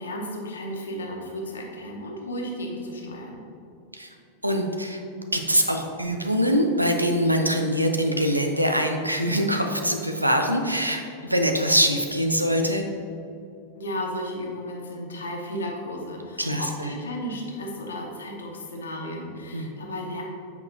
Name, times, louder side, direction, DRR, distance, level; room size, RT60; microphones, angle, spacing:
voice 1, 0.0-3.4 13.7-20.2, left 1 dB, 70° left, 0 dB, 1.0 m, -34 dB
voice 2, 4.4-5.0 5.3-12.8 16.4-16.9 19.5-19.7, equal, 85° right, 4 dB, 0.5 m, -23 dB
8.1 x 4.8 x 2.6 m, 2.6 s
figure-of-eight pair, 90°, 0 cm